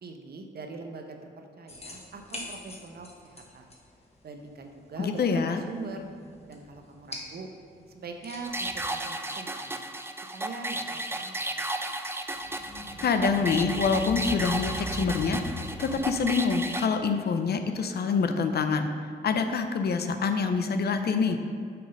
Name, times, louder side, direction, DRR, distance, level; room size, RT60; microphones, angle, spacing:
voice 1, 0.0-3.7 4.2-5.2 5.7-6.1 6.5-7.5 7.9-9.8 10.3-11.5, right 3 dB, 55° right, 4 dB, 0.8 m, -42 dB
sound 1, 1.7-8.9, left 1 dB, 35° left, 1.4 m, -46 dB
voice 2, 5.0-5.6 13.0-21.4, left 5 dB, 60° left, 7 dB, 0.6 m, -26 dB
sound 2, 8.4-16.9, right 1 dB, 15° right, 0.5 m, -34 dB
sound 3, 12.4-16.6, left 2 dB, 75° left, 1.3 m, -38 dB
6.7 x 3.8 x 5.3 m, 2.3 s
supercardioid pair, 55°, 19 cm